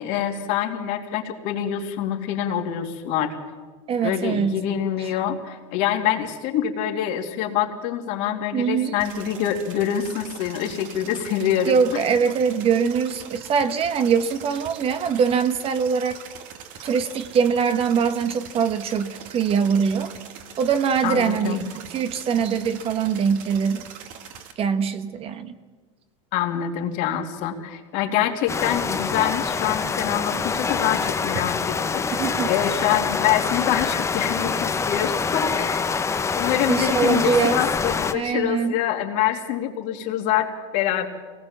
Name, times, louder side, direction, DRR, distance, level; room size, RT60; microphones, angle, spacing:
voice 1, 0.0-3.3 4.0-12.0 21.0-21.6 26.3-32.0 32.4-35.8 36.4-41.1, left 10 dB, 60° left, 4 dB, 2.9 m, -25 dB
voice 2, 3.9-4.6 5.0-5.1 8.5-9.0 11.7-16.2 16.8-20.1 20.6-23.9 24.6-25.5 32.2-32.5 36.7-37.6 38.1-38.8, right 6 dB, 35° right, 10 dB, 1.5 m, -23 dB
sound 1, 9.0-24.5, right 8 dB, 55° right, 2.4 m, -42 dB
sound 2, 28.5-38.1, left 5 dB, 20° left, 1.2 m, -25 dB
24.5 x 19.0 x 7.4 m, 1.4 s
supercardioid pair, 115°, 16 cm